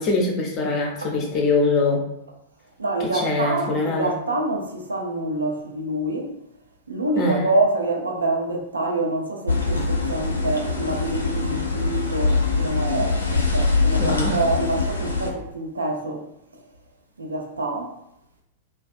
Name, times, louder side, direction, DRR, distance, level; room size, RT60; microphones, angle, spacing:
voice 1, 0.0-2.0 3.0-4.1 7.2-7.5 14.0-14.4, left 3 dB, 35° left, 0.7 m, -23 dB
voice 2, 2.8-6.3 6.9-16.3 17.2-17.9, right 2 dB, 80° right, 0.4 m, -26 dB
sound 1, 9.5-15.3, left 3 dB, 85° left, 0.4 m, -23 dB
2.4 x 2.2 x 2.4 m
figure-of-eight pair, 100°, 0 cm